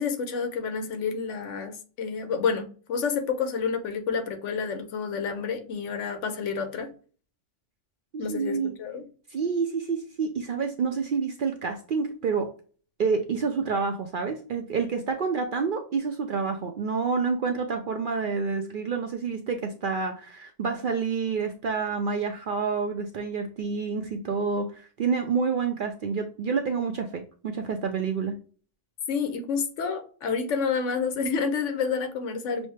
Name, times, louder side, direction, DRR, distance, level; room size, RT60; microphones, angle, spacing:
voice 1, 0.0-6.9 8.2-9.1 29.1-32.7, left 5 dB, 75° left, 1.1 m, -29 dB
voice 2, 8.1-8.7 9.3-12.5 13.0-28.4, right 5 dB, 60° right, 0.5 m, -28 dB
6.1 x 2.1 x 3.1 m
omnidirectional pair, 1.3 m